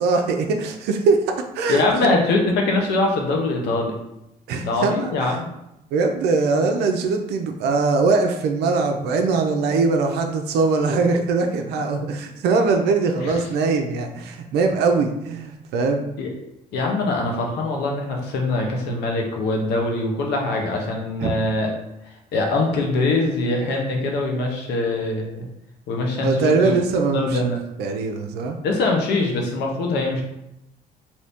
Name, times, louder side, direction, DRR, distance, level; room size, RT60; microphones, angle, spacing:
voice 1, 0.0-1.8 4.5-5.4 5.9-16.0 21.2-21.3 26.2-27.4 27.8-28.6, right 4 dB, 80° right, 4 dB, 0.5 m, -21 dB
voice 2, 1.7-4.0 4.6-5.5 13.2-13.3 16.2-16.3 16.7-21.7 22.3-25.4 25.9-26.7 27.1-27.6 28.6-30.2, left 2 dB, 80° left, 1 dB, 0.8 m, -23 dB
2.7 x 2.7 x 3.5 m, 0.86 s
cardioid pair, 110°, 17 cm